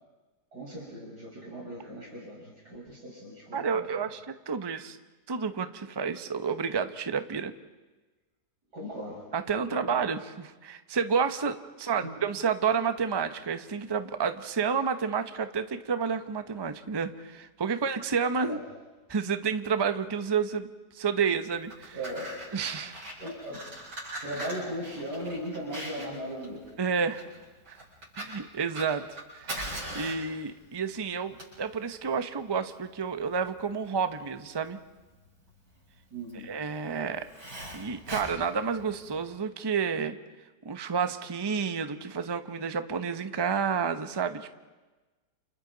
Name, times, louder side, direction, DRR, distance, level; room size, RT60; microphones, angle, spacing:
voice 1, 0.5-4.1 8.7-9.2 9.7-10.0 11.9-12.1 18.4-18.6 21.9-22.4 23.2-23.7 24.2-26.6 36.1-36.5, equal, 65° right, -4 dB, 6.0 m, -38 dB
voice 2, 3.5-5.0 5.3-7.5 9.3-18.6 19.1-20.7 20.9-22.0 22.5-23.0 26.8-27.3 27.7-27.8 28.2-29.6 29.9-34.8 36.4-37.3 37.7-40.2 40.6-44.5, right 6 dB, 25° right, 9 dB, 0.6 m, -30 dB
Fire, 21.5-39.2, right 1 dB, 85° right, 8.0 m, -42 dB
29.5 x 28.5 x 4.0 m, 1.2 s
omnidirectional pair, 1.8 m